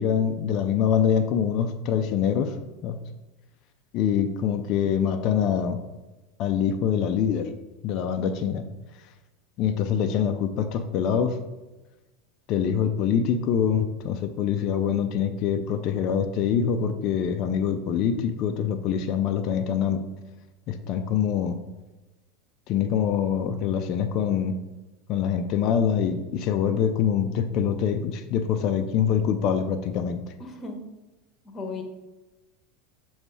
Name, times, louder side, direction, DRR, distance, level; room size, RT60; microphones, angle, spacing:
voice 1, 0.0-2.5 2.8-3.0 3.9-5.8 6.4-7.5 7.8-8.7 9.6-11.4 12.5-20.0 20.7-21.6 22.7-24.5 25.1-30.2, left 8 dB, 50° left, 7 dB, 0.5 m, -24 dB
voice 2, 30.4-30.8 31.4-31.8, left 3 dB, 25° left, 4 dB, 1.3 m, -35 dB
6.7 x 3.1 x 4.8 m, 1.1 s
hypercardioid pair, 95°, 0 cm